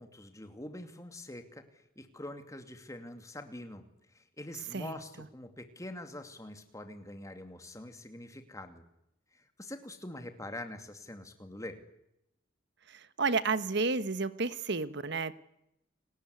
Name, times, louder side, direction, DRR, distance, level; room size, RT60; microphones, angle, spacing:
voice 1, 0.0-1.6 2.0-3.8 4.1-8.8 9.3-11.8, left 1 dB, 15° left, 7 dB, 2.6 m, -45 dB
voice 2, 12.9-15.3, right 4 dB, 60° right, 14 dB, 1.3 m, -31 dB
30.0 x 20.5 x 9.6 m, 0.84 s
head